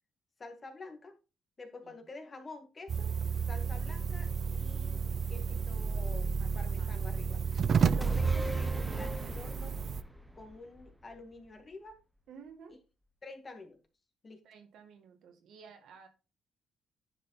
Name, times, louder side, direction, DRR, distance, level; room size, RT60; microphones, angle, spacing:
voice 1, 0.4-1.1 1.6-3.1 3.5-5.0 5.3-7.4 7.9-9.8 10.3-12.0 13.2-13.8 14.2-14.4, left 3 dB, 35° left, 5 dB, 2.0 m, -48 dB
sound 1, 2.9-10.0, right 6 dB, 50° right, 0.5 m, -31 dB
voice 2, 6.4-7.1 12.3-12.8 14.4-16.1, right 6 dB, 75° right, 5 dB, 2.0 m, -55 dB
sound 2, 8.0-11.6 11.9-12.0, equal, 5° right, 0.9 m, -42 dB
10.0 x 5.2 x 4.1 m, 0.31 s
cardioid pair, 90°, 0 cm